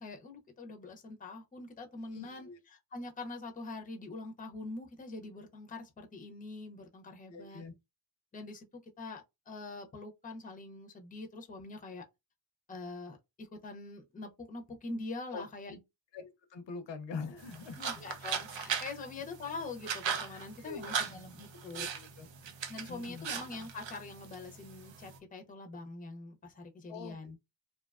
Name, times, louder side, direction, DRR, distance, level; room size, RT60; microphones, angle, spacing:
voice 1, 0.0-7.6 8.3-12.0 12.7-15.8 17.8-21.9 22.7-27.4, left 3 dB, 20° left, 0.5 m, -44 dB
voice 2, 2.1-2.6 7.3-7.7 15.3-15.4 16.1-17.8 20.3-21.0 21.6-22.3 22.9-23.3 26.9-27.2, left 5 dB, 80° left, 0.6 m, -44 dB
sound 1, 17.4-25.2, right 7 dB, 90° right, 0.6 m, -39 dB
2.7 x 2.2 x 2.3 m
wide cardioid pair, 120°, 43 cm